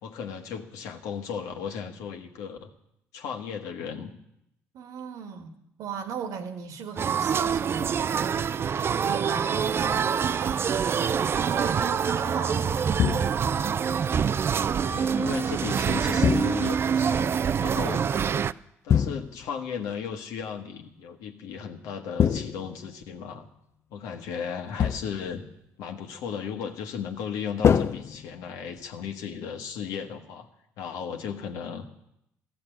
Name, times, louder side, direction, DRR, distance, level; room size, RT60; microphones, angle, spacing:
voice 1, 0.0-2.7 3.1-4.1 14.8-17.3 17.6-18.0 18.8-23.5 23.9-25.4 25.8-30.5 30.8-32.0, left 7 dB, 80° left, 4 dB, 1.5 m, -35 dB
voice 2, 4.7-8.3 9.0-12.9, right 6 dB, 70° right, 7 dB, 1.6 m, -37 dB
sound 1, 7.0-18.5, right 7 dB, 40° right, 0.4 m, -26 dB
sound 2, 13.0-13.6 16.2-16.9 18.9-19.6 22.2-23.1 24.8-25.4 27.6-28.7, left 8 dB, 50° left, 0.6 m, -25 dB
13.5 x 7.8 x 8.9 m, 0.80 s
supercardioid pair, 65°, 6 cm